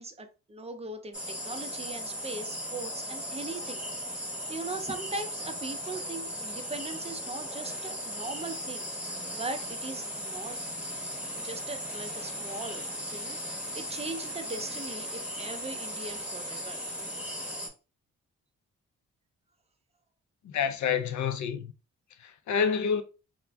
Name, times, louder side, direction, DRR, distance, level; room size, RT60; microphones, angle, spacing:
voice 1, 0.0-3.8 4.5-8.9 9.3-10.6 11.4-16.9, right 3 dB, 20° right, 0.5 m, -40 dB
sound 1, 1.1-17.7, equal, 5° right, 0.9 m, -37 dB
voice 2, 20.4-21.7 22.2-23.0, left 6 dB, 60° left, 0.5 m, -28 dB
2.4 x 2.1 x 3.3 m
supercardioid pair, 55°, 33 cm